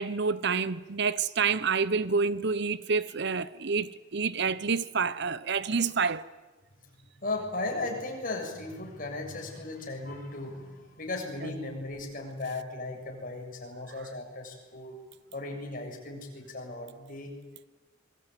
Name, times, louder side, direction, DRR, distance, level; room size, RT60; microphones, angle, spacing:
voice 1, 0.0-6.2 11.4-11.5, right 5 dB, 60° right, 0.9 m, -28 dB
voice 2, 7.2-15.0 15.3-17.3, left 2 dB, 45° left, 7.0 m, -36 dB
26.0 x 23.0 x 9.2 m
head